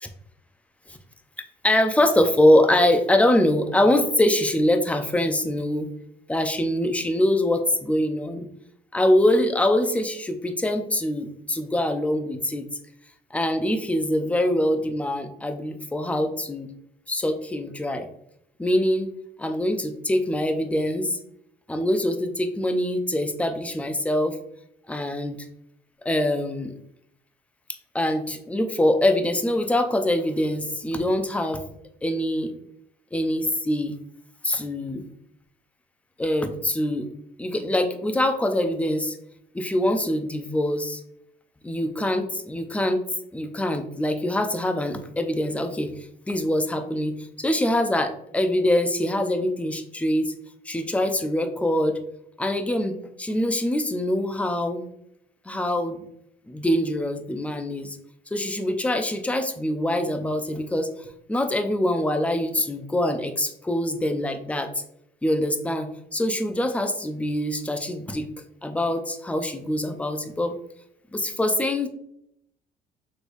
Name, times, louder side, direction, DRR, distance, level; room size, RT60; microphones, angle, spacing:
voice 1, 1.6-5.9 6.3-8.5 8.9-12.7 13.3-16.7 17.1-18.1 18.6-19.1 19.4-21.2 21.7-24.4 24.9-25.5 26.0-26.7 27.9-31.6 32.0-32.5 33.1-33.9 34.4-35.1 36.2-37.1 37.4-39.2 39.5-41.0 41.6-43.0 43.3-45.9 46.3-50.3 50.7-52.0 52.4-54.8 55.5-56.0 56.5-58.0 58.3-60.9 61.3-64.7 65.2-68.3 68.6-70.6 71.1-71.9, left 1 dB, 10° left, 7 dB, 0.5 m, -24 dB
6.2 x 3.3 x 2.6 m, 0.74 s
cardioid pair, 110°, 17 cm